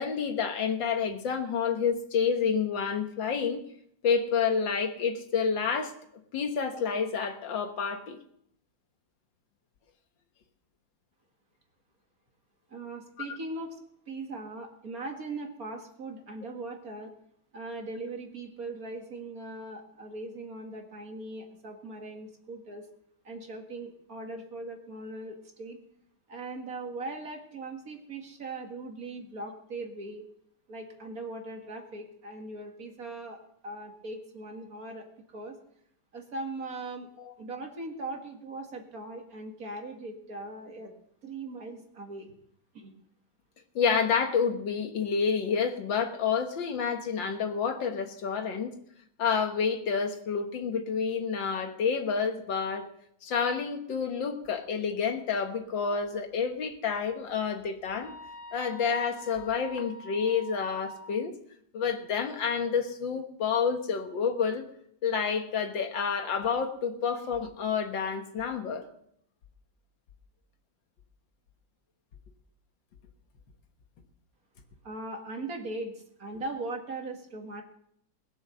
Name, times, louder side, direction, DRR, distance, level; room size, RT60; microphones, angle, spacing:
voice 1, 0.0-3.6 4.0-5.9 6.3-8.2 37.2-37.3 43.8-48.7 49.2-52.9 53.2-58.1 58.5-61.3 61.7-64.6 65.0-68.8, left 6 dB, 85° left, 6 dB, 2.1 m, -29 dB
voice 2, 12.7-13.8 14.1-17.1 17.5-22.9 23.2-25.8 26.3-30.2 30.7-33.4 33.6-35.0 35.3-35.6 36.1-37.1 37.4-40.9 41.2-42.3 42.7-42.9 74.8-75.9 76.2-77.6, right 2 dB, 50° right, 3 dB, 2.3 m, -39 dB
sound 1, 57.9-61.2, left 2 dB, 60° left, 2.8 m, -46 dB
20.5 x 7.1 x 6.8 m, 0.70 s
omnidirectional pair, 2.0 m